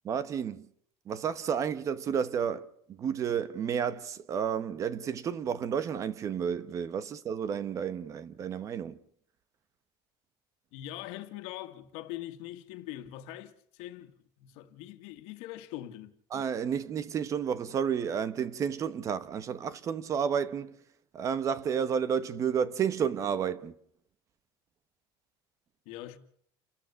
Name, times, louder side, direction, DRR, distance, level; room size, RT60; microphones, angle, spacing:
voice 1, 0.0-0.7 1.1-9.0 16.3-20.7 21.1-23.7, right 7 dB, 30° right, 1.1 m, -31 dB
voice 2, 10.7-16.2 25.9-26.2, left 14 dB, 75° left, 1.9 m, -42 dB
29.5 x 13.0 x 7.0 m
cardioid pair, 160°, 10 cm